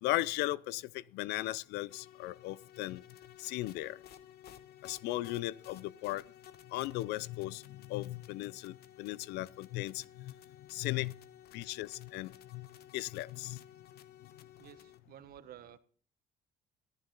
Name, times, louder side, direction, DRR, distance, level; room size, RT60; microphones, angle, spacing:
voice 1, 0.0-3.0 3.4-4.0 4.8-6.2 6.7-10.3 10.7-11.1 11.5-12.7 12.9-13.6, left 17 dB, 90° left, 0.5 m, -37 dB
sound 1, 1.9-15.0, left 10 dB, 70° left, 1.2 m, -56 dB
voice 2, 14.6-15.8, right 11 dB, 60° right, 1.2 m, -52 dB
14.0 x 13.0 x 3.9 m
cardioid pair, 110°, 17 cm